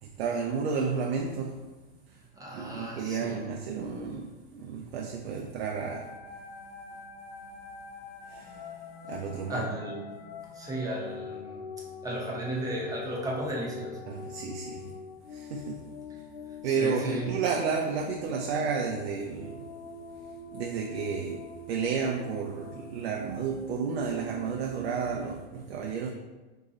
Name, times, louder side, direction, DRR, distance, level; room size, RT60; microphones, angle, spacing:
voice 1, 0.0-1.6 2.5-6.1 8.2-8.7 9.1-9.6 14.1-14.9 15.3-15.9 16.6-19.6 20.5-26.1, right 5 dB, 80° right, 1 dB, 0.5 m, -32 dB
voice 2, 2.3-3.4 9.5-10.0 10.5-11.6 12.0-14.0 14.3-14.4 14.8-14.9 16.6-17.3, right 1 dB, 10° right, -3 dB, 0.7 m, -35 dB
sound 1, 5.8-25.4, left 3 dB, 70° left, 0.6 m, -43 dB
2.9 x 2.7 x 3.8 m, 1.2 s
supercardioid pair, 130°, 31 cm